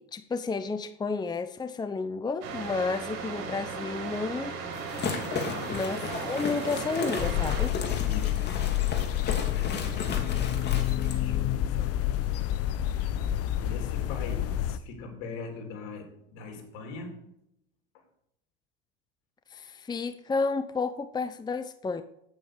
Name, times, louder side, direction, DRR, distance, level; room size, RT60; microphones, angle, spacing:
voice 1, 0.0-4.5 5.7-7.7 19.5-22.0, left 4 dB, 15° left, 0.7 m, -31 dB
sound 1, 2.4-7.7, right 5 dB, 70° right, 3.7 m, -37 dB
sound 2, 4.7-11.2, left 4 dB, 35° left, 2.6 m, -35 dB
voice 2, 5.2-5.8 7.8-8.7 9.5-10.3 11.0-12.4 13.6-17.2, left 3 dB, 75° left, 3.6 m, -42 dB
sound 3, 7.2-14.8, left 12 dB, 55° left, 0.9 m, -28 dB
9.2 x 8.7 x 6.4 m
supercardioid pair, 105°, 29 cm